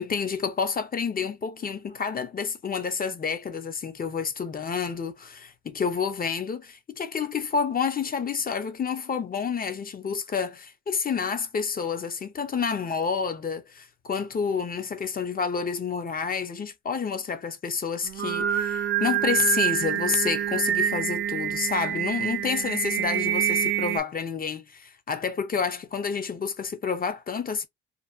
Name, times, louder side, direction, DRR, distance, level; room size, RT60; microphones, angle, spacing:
voice 1, 0.0-27.7, left 6 dB, 30° left, 0.5 m, -29 dB
Singing, 18.0-24.0, right 10 dB, 40° right, 0.4 m, -26 dB
2.6 x 2.0 x 2.3 m
cardioid pair, 90°, 30 cm